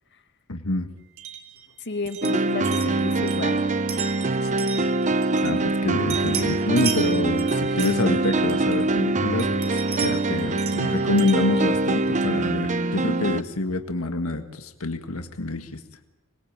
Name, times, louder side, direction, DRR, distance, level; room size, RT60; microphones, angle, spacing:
voice 1, 0.5-0.9 5.4-15.8, left 2 dB, 80° left, 7 dB, 1.7 m, -27 dB
sound 1, 1.2-5.8 6.1-9.0 9.4-12.4, right 8 dB, 75° right, 3.6 m, -36 dB
voice 2, 1.8-3.6, left 3 dB, 55° left, 9 dB, 2.0 m, -32 dB
sound 2, 2.2-13.4, right 2 dB, 35° right, 0.9 m, -24 dB
26.5 x 21.5 x 9.0 m, 0.94 s
head